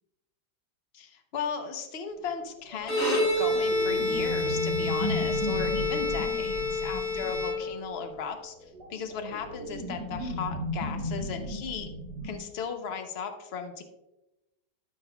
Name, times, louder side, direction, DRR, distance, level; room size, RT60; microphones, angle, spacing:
voice 1, 0.9-11.9 12.2-13.8, left 6 dB, 50° left, 6 dB, 0.9 m, -36 dB
sound 1, 2.6-7.7 8.6-12.4, equal, 70° right, 3.0 m, -35 dB
Bowed string instrument, 2.8-8.1, left 2 dB, 65° left, 2.9 m, -28 dB
12.5 x 5.6 x 2.3 m, 0.95 s
omnidirectional pair, 1.8 m